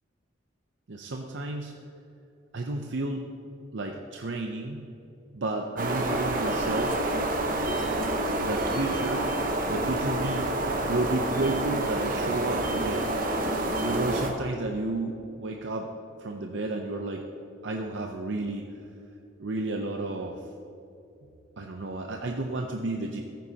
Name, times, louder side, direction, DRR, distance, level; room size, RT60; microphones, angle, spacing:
voice 1, 0.9-1.7 2.5-3.3 3.7-4.9 5.3-7.0 8.4-9.3 9.7-13.1 13.8-15.9 16.2-17.2 17.6-18.7 19.4-20.4 21.6-23.2, right 2 dB, 65° right, 3 dB, 0.6 m, -32 dB
sound 1, 5.8-14.3, right 1 dB, 40° right, 1.0 m, -28 dB
14.5 x 9.3 x 2.8 m, 2.8 s
head